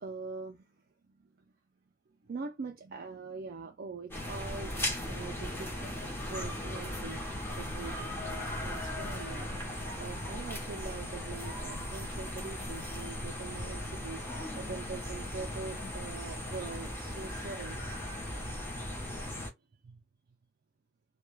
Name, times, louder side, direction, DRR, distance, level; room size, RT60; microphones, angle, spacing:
voice 1, 0.0-1.5 2.2-5.9 6.2-9.5 10.0-17.9 19.7-20.0, right 4 dB, 50° right, 0.4 m, -44 dB
sound 1, 4.1-19.5, left 1 dB, 10° left, 0.7 m, -38 dB
2.2 x 2.2 x 3.0 m
head